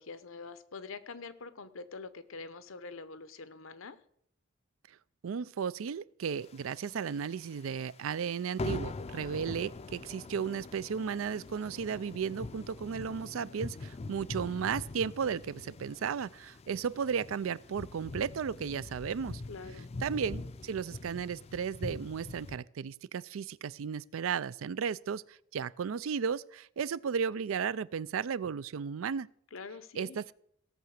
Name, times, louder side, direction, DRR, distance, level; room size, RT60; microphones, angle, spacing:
voice 1, 0.0-4.0 19.5-19.9 29.5-30.2, left 4 dB, 85° left, 0.9 m, -45 dB
voice 2, 5.2-19.4 20.0-29.3 30.0-30.2, right 6 dB, 90° right, 0.4 m, -34 dB
sound 1, 6.4-7.4 7.7-7.8 8.1-8.3 8.6-22.6, left 3 dB, 30° left, 0.4 m, -43 dB
16.5 x 6.8 x 6.5 m
head